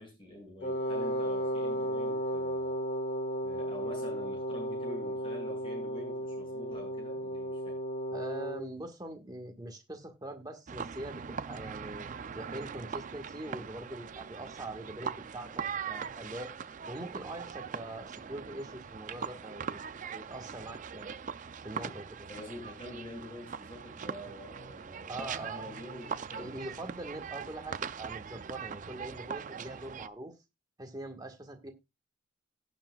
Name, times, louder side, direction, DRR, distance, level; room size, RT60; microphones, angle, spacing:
voice 1, 0.0-2.7 3.4-7.8 21.8-22.0 22.3-26.6 27.1-27.2, left 1 dB, 25° left, 1 dB, 6.9 m, -46 dB
Wind instrument woodwind instrument, 0.6-8.7, right 1 dB, 45° left, 1.5 m, -34 dB
voice 2, 8.1-16.5 16.9-19.6 20.1-21.2 21.6-22.3 25.1-25.7 26.4-30.3 30.8-31.7, right 1 dB, 20° right, 3 dB, 1.6 m, -43 dB
sound 1, 10.7-30.1, right 6 dB, 40° right, 0.4 m, -41 dB
17.5 x 7.4 x 2.3 m, 0.25 s
head